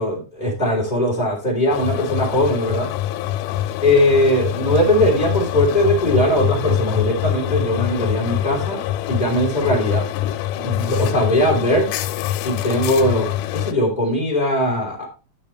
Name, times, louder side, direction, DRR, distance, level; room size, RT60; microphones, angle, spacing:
voice 1, 0.0-2.9 3.8-8.8 9.1-10.1 10.5-11.9 12.4-15.1, equal, 10° left, -4 dB, 2.3 m, -20 dB
sound 1, 1.7-13.7, left 13 dB, 90° left, 3.1 m, -24 dB
12.5 x 5.6 x 3.3 m, 0.32 s
omnidirectional pair, 5.6 m